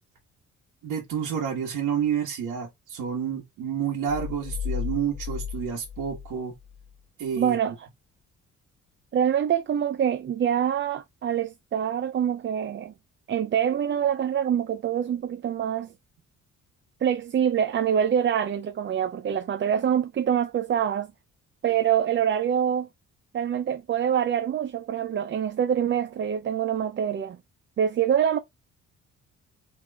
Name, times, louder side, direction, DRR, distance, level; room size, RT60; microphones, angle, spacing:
voice 1, 0.8-6.5 7.2-7.6, right 8 dB, 85° right, 1.5 m, -29 dB
sound 1, 4.1-7.0, left 8 dB, 20° left, 0.5 m, -34 dB
voice 2, 7.4-7.7 9.1-12.9 13.3-15.9 17.0-21.1 21.6-22.9 23.3-27.4 27.8-28.4, right 9 dB, 40° right, 0.5 m, -25 dB
5.1 x 3.5 x 2.4 m
cardioid pair, 90°, 30 cm